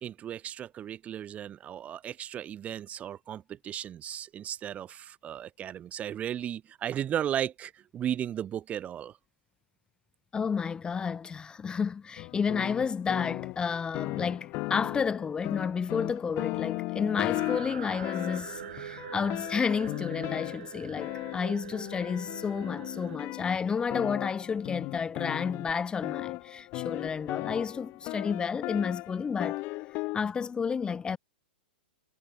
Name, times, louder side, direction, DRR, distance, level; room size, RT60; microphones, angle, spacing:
voice 1, 0.0-9.1, right 10 dB, 25° right, 1.1 m, -35 dB
voice 2, 10.3-29.6 29.9-31.2, left 6 dB, 15° left, 0.8 m, -31 dB
sound 1, 12.2-30.2, left 23 dB, 35° left, 1.7 m, -36 dB
sound 2, 17.3-23.2, right 11 dB, 60° right, 5.5 m, -44 dB
figure-of-eight pair, 110°, 6 cm